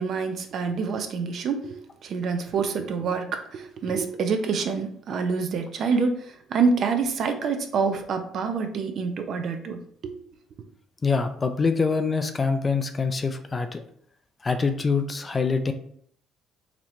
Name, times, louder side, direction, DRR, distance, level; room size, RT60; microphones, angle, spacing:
voice 1, 0.0-10.1, right 5 dB, 55° right, 7 dB, 0.5 m, -27 dB
voice 2, 11.0-13.8 14.4-15.7, left 4 dB, 25° left, 8 dB, 0.4 m, -25 dB
4.0 x 2.9 x 3.1 m, 0.63 s
cardioid pair, 110°, 0 cm